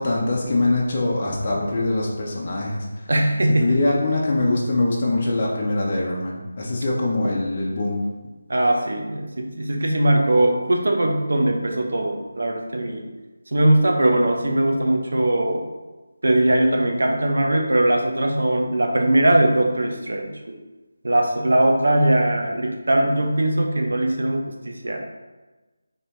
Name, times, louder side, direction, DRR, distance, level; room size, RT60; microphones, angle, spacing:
voice 1, 0.0-3.1 3.6-8.1, left 2 dB, 35° left, -4 dB, 0.8 m, -23 dB
voice 2, 3.1-3.8 8.5-13.1 13.5-15.6 16.2-20.3 21.0-25.0, right 1 dB, 70° right, 2 dB, 0.8 m, -20 dB
4.3 x 3.4 x 2.6 m, 1.2 s
figure-of-eight pair, 165°, 0 cm